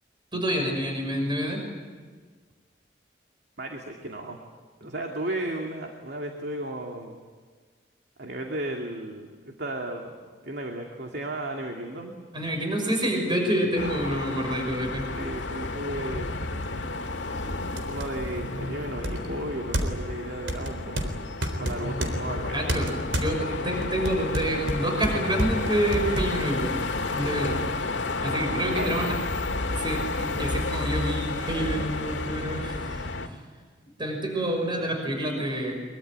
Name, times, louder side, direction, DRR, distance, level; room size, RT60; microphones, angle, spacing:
voice 1, 0.3-1.6 12.3-15.1 22.5-22.9 23.2-26.7 27.1-27.5 28.2-29.2 29.8-33.4 34.0-35.8, right 1 dB, 25° right, 2 dB, 5.9 m, -28 dB
voice 2, 3.6-4.4 4.8-7.2 8.2-10.2 10.4-12.1 13.6-13.7 15.2-16.3 17.8-21.1 21.6-23.0 28.7-29.1, right 1 dB, 65° right, 2 dB, 2.5 m, -34 dB
sound 1, 13.8-33.3, left 2 dB, 90° left, 1.9 m, -31 dB
sound 2, 16.6-16.7 17.2-17.3 17.8-18.1 19.0-20.1 20.5-22.2 22.7-23.3 23.8-26.3, right 1 dB, 90° right, 3.8 m, -29 dB
24.0 x 23.5 x 9.4 m, 1.5 s
head